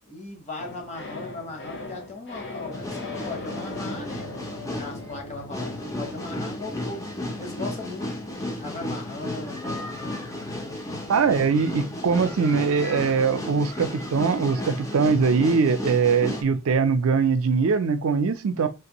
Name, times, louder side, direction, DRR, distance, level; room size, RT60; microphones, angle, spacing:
voice 1, 0.1-4.3 4.7-10.8 18.5-18.7, left 2 dB, 30° left, 1.0 m, -38 dB
sound 1, 0.6-16.9 17.2-17.3, left 2 dB, 55° left, 0.8 m, -42 dB
sound 2, 2.7-16.4, left 1 dB, 15° left, 0.5 m, -34 dB
voice 2, 11.1-18.7, right 5 dB, 70° right, 0.4 m, -22 dB
3.3 x 2.6 x 2.9 m
head